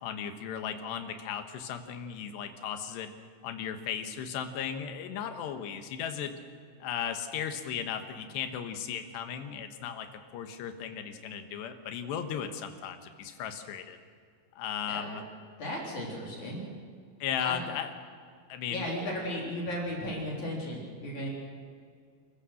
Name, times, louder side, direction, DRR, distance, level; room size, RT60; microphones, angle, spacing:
voice 1, 0.0-3.1 3.4-6.4 6.8-10.1 10.3-14.0 14.6-15.2 17.2-17.9 18.5-19.1, left 8 dB, 80° left, 7 dB, 3.5 m, -36 dB
voice 2, 15.6-16.6 17.4-17.6 18.7-21.3, left 1 dB, 45° left, -3 dB, 4.7 m, -35 dB
29.0 x 15.0 x 6.4 m, 2.1 s
omnidirectional pair, 4.9 m